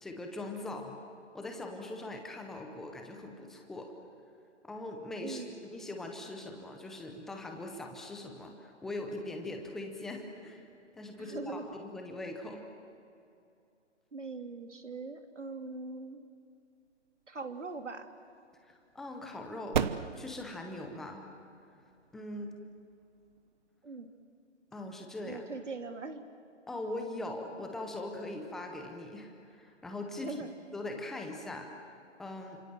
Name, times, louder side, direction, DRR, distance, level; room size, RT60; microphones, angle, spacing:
voice 1, 0.0-1.0 1.3-3.9 4.6-10.6 10.9-12.6 18.7-19.8 20.2-21.3 22.1-22.5 24.7-25.4 26.7-30.3 30.7-31.7 32.2-32.6, left 2 dB, ahead, 3 dB, 0.6 m, -41 dB
voice 2, 11.2-11.8 14.1-16.2 17.3-18.1 23.8-24.1 25.2-26.2 30.2-30.5, right 3 dB, 75° right, 5 dB, 3.2 m, -41 dB
sound 1, 17.1-24.4, right 7 dB, 40° right, 1.0 m, -40 dB
29.5 x 26.5 x 7.7 m, 2.6 s
figure-of-eight pair, 150°, 36 cm